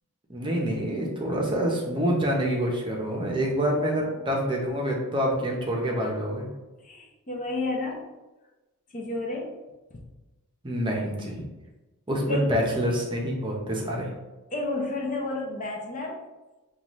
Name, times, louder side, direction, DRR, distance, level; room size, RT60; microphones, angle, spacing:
voice 1, 0.3-6.5 10.6-11.4 12.1-14.1, equal, 20° right, -1 dB, 0.7 m, -27 dB
voice 2, 5.8-6.1 6.8-8.1 8.9-9.6 9.9-10.0 12.3-12.6 14.5-16.2, left 2 dB, 35° left, 0 dB, 0.6 m, -31 dB
5.6 x 2.4 x 3.0 m, 1.1 s
head